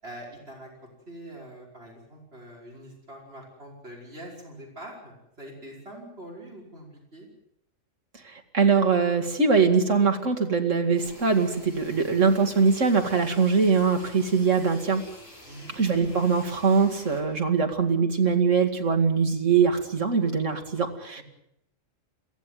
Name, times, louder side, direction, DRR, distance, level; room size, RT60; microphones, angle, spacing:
voice 1, 0.0-7.3 15.5-15.7 21.2-21.3, right 1 dB, 50° right, -1 dB, 5.7 m, -44 dB
voice 2, 8.5-15.0 15.7-21.2, right 5 dB, 70° right, 4 dB, 2.8 m, -22 dB
sound 1, 11.0-17.2, equal, 50° left, 8.2 m, -48 dB
22.5 x 16.0 x 9.3 m, 0.78 s
omnidirectional pair, 1.3 m